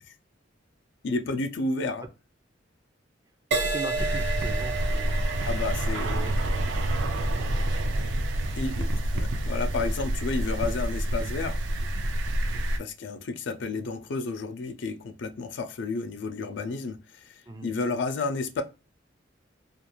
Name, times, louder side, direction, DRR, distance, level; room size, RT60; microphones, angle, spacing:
voice 1, 1.0-2.0 5.5-6.2 8.6-11.6 12.8-18.6, left 3 dB, 65° left, 0.4 m, -31 dB
Crash cymbal, 3.5-11.1 11.8-12.1, right 3 dB, 65° right, 0.8 m, -35 dB
voice 2, 3.6-5.3 6.0-6.5 7.3-7.9 12.5-12.7 17.5-17.7, right 3 dB, 20° right, 0.4 m, -40 dB
sound 1, 4.0-12.8, right 1 dB, 85° right, 0.5 m, -28 dB
2.4 x 2.3 x 3.0 m
head